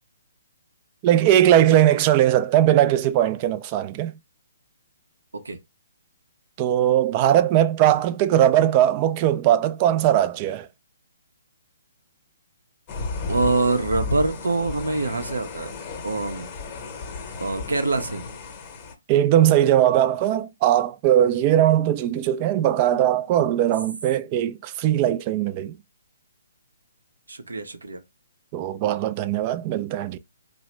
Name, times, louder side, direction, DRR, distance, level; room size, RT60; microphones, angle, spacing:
voice 1, 1.0-4.1 6.6-10.7 19.1-25.8 28.5-30.2, right 11 dB, 30° right, 0.3 m, -19 dB
sound 1, 12.9-18.9, left 4 dB, 30° left, 0.8 m, -34 dB
voice 2, 13.3-15.7 16.0-16.5 17.4-18.2 27.3-28.0, right 3 dB, 85° right, 0.6 m, -25 dB
2.8 x 2.1 x 3.2 m
figure-of-eight pair, 140°, 0 cm